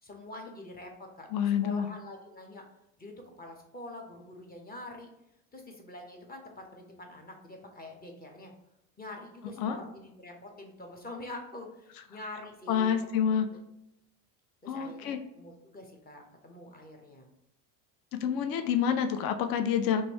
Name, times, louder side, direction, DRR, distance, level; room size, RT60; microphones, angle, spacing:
voice 1, 0.0-1.3 1.6-2.7 3.0-5.1 5.5-8.5 9.0-12.9 13.4-13.6 14.6-17.3, left 2 dB, 20° left, 2 dB, 0.8 m, -45 dB
voice 2, 1.3-1.9 9.6-9.8 12.7-13.5 14.7-15.2 18.1-20.0, left 8 dB, 45° left, 8 dB, 0.5 m, -28 dB
3.0 x 2.7 x 2.9 m, 0.85 s
hypercardioid pair, 80°, 48 cm